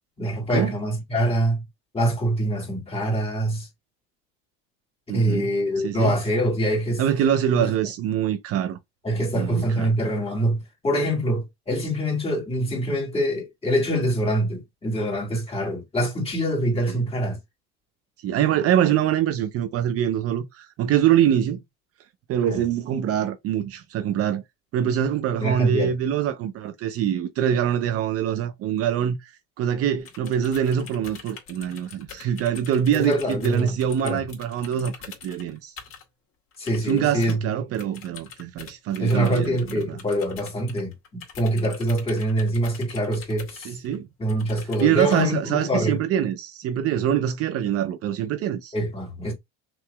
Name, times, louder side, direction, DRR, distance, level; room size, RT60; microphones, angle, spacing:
voice 1, 0.2-1.6 1.9-3.7 5.1-7.0 7.5-7.7 9.0-17.4 22.5-22.6 25.4-25.9 32.9-34.2 36.6-37.5 39.0-43.8 44.2-46.0 48.7-49.3, right 1 dB, 20° left, 2.3 m, -25 dB
voice 2, 5.1-5.5 5.8-6.1 7.0-8.8 9.3-9.9 16.9-17.0 18.2-21.6 22.3-24.4 24.7-29.3 29.6-34.9 35.2-35.7 36.9-40.0 43.6-44.1 44.8-48.7, right 10 dB, 50° right, 0.7 m, -24 dB
sound 1, 30.0-36.0 36.5-37.4 37.7-44.0 44.3-45.2, left 6 dB, 45° left, 2.3 m, -44 dB
6.1 x 3.0 x 2.3 m
supercardioid pair, 100°, 31 cm